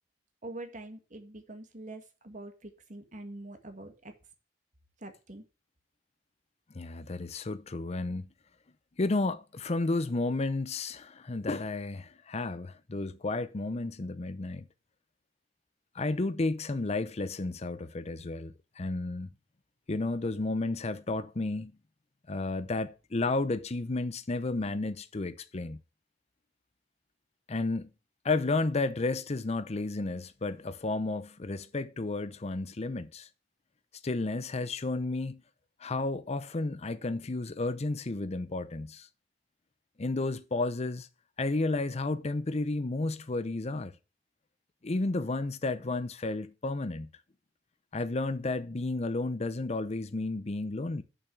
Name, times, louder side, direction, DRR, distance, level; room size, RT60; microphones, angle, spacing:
voice 1, 0.4-4.1 5.0-5.4, right 2 dB, 45° right, 1.7 m, -44 dB
voice 2, 6.7-8.3 9.0-14.6 15.9-19.3 19.9-21.7 22.3-25.8 27.5-27.9 28.2-33.3 34.0-35.4 35.8-39.1 40.0-41.1 41.4-44.0 44.8-47.1 47.9-51.0, left 2 dB, 35° left, 0.6 m, -32 dB
7.0 x 5.8 x 7.1 m
head